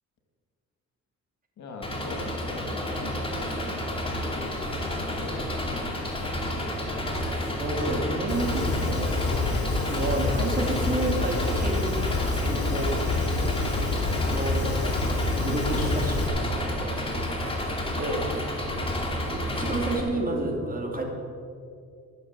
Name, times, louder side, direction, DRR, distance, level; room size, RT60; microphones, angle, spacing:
voice 1, 1.6-4.7 4.9-5.8 13.3-13.5, left 2 dB, 65° left, 3 dB, 2.7 m, -40 dB
Engine, 1.8-20.0, left 1 dB, 20° left, 2.6 m, -30 dB
voice 2, 7.6-9.2 9.9-13.0 14.3-15.0 15.3-17.1 17.9-18.2 19.3-21.0, right 2 dB, 30° right, 1 dB, 2.6 m, -30 dB
Fire, 8.3-16.3, left 3 dB, 50° left, 2.9 m, -28 dB
14.5 x 7.2 x 7.6 m, 2.4 s
cardioid pair, 90°, 30 cm